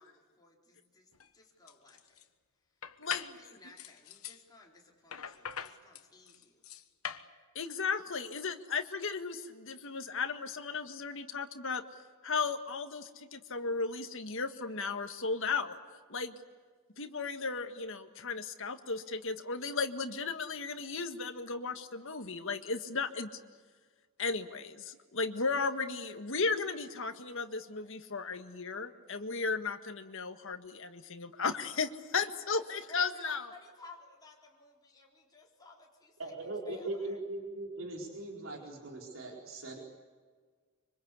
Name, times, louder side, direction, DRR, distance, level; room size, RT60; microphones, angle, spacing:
voice 1, 0.0-2.1 3.0-6.6 32.5-32.6 32.9-37.2, left 3 dB, 20° left, -2 dB, 4.0 m, -56 dB
sound 1, 1.1-1.3 1.7-2.2 2.8-3.4 3.8-4.4 5.1-7.3, left 8 dB, 75° left, 1.3 m, -42 dB
voice 2, 7.6-11.8 12.2-15.8 16.1-16.4 17.0-23.4 24.2-33.5, left 4 dB, 60° left, 7 dB, 1.8 m, -35 dB
voice 3, 36.2-39.8, right 2 dB, 65° right, -1 dB, 4.4 m, -40 dB
25.5 x 25.0 x 8.3 m, 1.6 s
head